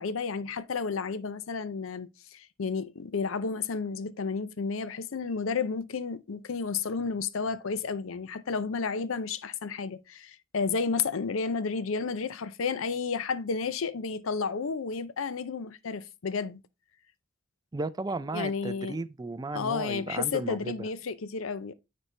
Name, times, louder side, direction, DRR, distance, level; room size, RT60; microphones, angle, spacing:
voice 1, 0.0-16.6 18.3-19.0 19.5-21.7, left 5 dB, 75° left, 0.6 m, -32 dB
voice 2, 17.7-20.9, right 2 dB, 20° right, 0.4 m, -35 dB
9.1 x 4.2 x 3.3 m
head